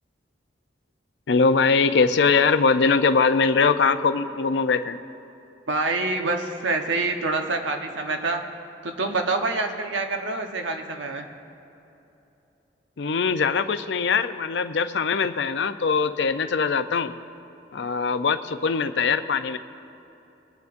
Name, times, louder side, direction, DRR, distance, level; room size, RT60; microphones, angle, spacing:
voice 1, 1.3-5.0 13.0-17.1 17.7-19.6, left 5 dB, 70° left, 11 dB, 0.5 m, -22 dB
voice 2, 5.7-8.4 8.8-11.3, right 3 dB, 85° right, 4 dB, 1.1 m, -26 dB
23.5 x 9.5 x 2.6 m, 2.9 s
head